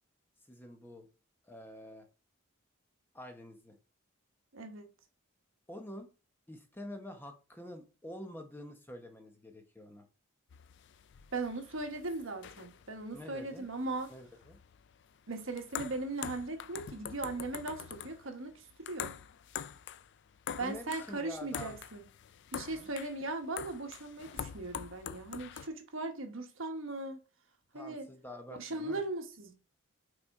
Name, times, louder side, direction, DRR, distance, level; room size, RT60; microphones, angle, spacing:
voice 1, 0.5-1.1 1.4-2.1 3.1-3.8 5.7-6.1 6.5-10.1 13.1-13.7 14.1-14.6 20.6-21.8 22.6-22.9 27.7-29.0, left 1 dB, 10° left, 0.9 m, -47 dB
voice 2, 4.5-4.9 11.3-14.1 15.3-19.1 20.6-22.0 22.5-27.2 27.7-28.1 28.6-29.5, right 2 dB, 65° right, 1.2 m, -38 dB
sound 1, 10.5-25.7, left 8 dB, 55° left, 0.4 m, -45 dB
5.8 x 4.0 x 4.7 m
head